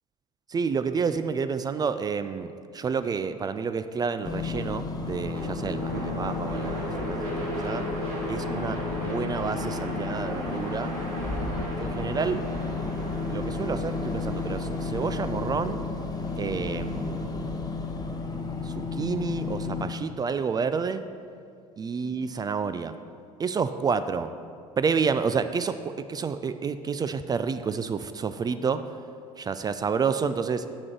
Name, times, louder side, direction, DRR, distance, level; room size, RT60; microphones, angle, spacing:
voice 1, 0.5-7.9 8.3-10.9 11.8-12.5 13.3-15.8 16.4-17.6 18.6-21.0 21.8-23.0 23.4-24.3 24.8-28.8 29.4-30.7, right 5 dB, 20° right, 11 dB, 0.3 m, -29 dB
sound 1, 4.2-19.9, left 3 dB, 20° left, 0.9 m, -32 dB
sound 2, 5.3-17.4, equal, 75° right, 2.0 m, -36 dB
6.1 x 6.0 x 6.7 m, 2.3 s
figure-of-eight pair, 65°, 19 cm